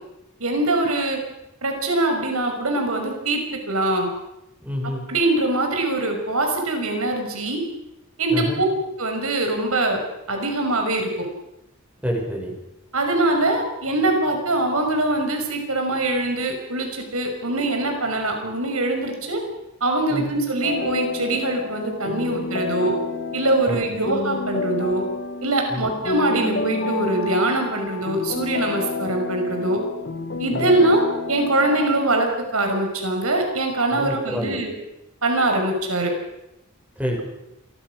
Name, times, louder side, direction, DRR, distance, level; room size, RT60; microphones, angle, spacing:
voice 1, 0.4-1.2 1.6-4.1 5.1-7.6 8.2-8.7 9.0-10.0 10.3-11.3 12.9-19.4 19.8-22.9 23.3-25.0 25.4-29.8 30.4-31.0 31.3-34.7 35.2-36.1, right 2 dB, 85° right, 4 dB, 6.0 m, -23 dB
voice 2, 4.6-5.0 8.3-8.6 12.0-12.5 20.1-20.3 23.7-24.0 25.7-25.9 30.5-30.7 33.9-34.6 37.0-37.2, equal, 5° right, 0 dB, 6.3 m, -27 dB
sound 1, 20.6-32.2, left 3 dB, 55° left, 1.7 m, -29 dB
28.0 x 23.0 x 6.4 m, 0.89 s
head